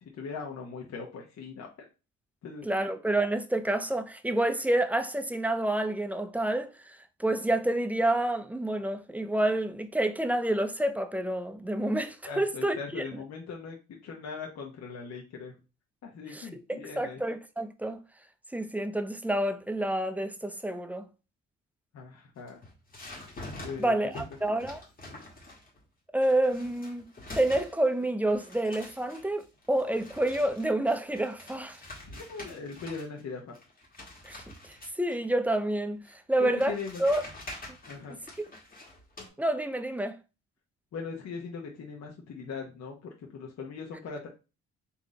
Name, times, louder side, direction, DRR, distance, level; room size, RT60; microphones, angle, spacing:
voice 1, 0.0-1.7 2.4-2.7 12.3-15.5 16.0-17.2 21.9-22.6 23.6-23.9 32.1-33.6 36.4-37.0 37.9-38.2 40.9-44.3, left 5 dB, 60° left, 1.0 m, -40 dB
voice 2, 2.6-13.0 16.3-18.0 18.5-21.1 23.8-24.8 26.1-27.1 27.3-31.8 34.2-37.3 39.4-40.2, right 1 dB, 5° right, 0.5 m, -29 dB
sound 1, 22.4-25.8 26.2-28.0 28.3-33.2 33.5-35.2 36.0-36.1 36.6-39.3, left 1 dB, 30° left, 1.6 m, -46 dB
4.0 x 2.9 x 3.8 m
cardioid pair, 90°, 30 cm